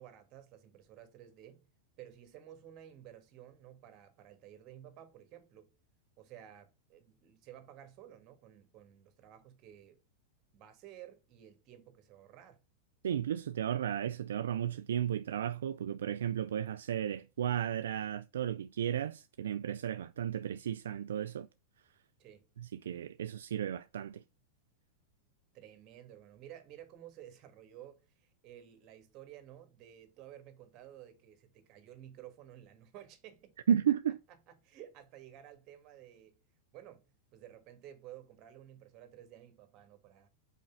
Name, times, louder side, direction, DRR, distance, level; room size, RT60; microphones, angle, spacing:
voice 1, 0.0-1.6 2.0-5.7 6.2-10.0 10.5-12.6 22.2-22.5 25.5-33.6 34.6-36.4 36.7-37.0 37.3-40.3, right 11 dB, 45° right, 1.5 m, -53 dB
voice 2, 13.0-21.5 22.6-24.2 33.7-34.2, right 9 dB, 80° right, 0.3 m, -34 dB
5.3 x 4.3 x 5.7 m
hypercardioid pair, 105°, 0 cm